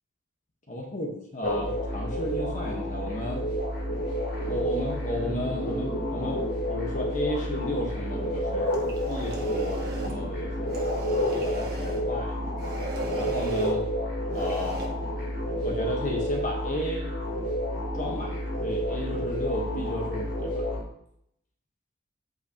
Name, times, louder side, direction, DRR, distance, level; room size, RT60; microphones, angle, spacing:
voice 1, 0.7-3.5 4.3-12.4 13.1-13.9 14.3-14.8 15.6-17.1 17.9-20.7, left 1 dB, 40° left, 0 dB, 1.3 m, -33 dB
sound 1, 1.4-20.8, equal, 55° left, 3.5 m, -30 dB
sound 2, 8.7-10.2 10.7-12.0 12.6-13.8 14.3-14.9, right 2 dB, 50° right, 1.4 m, -36 dB
8.5 x 8.0 x 3.0 m, 0.72 s
head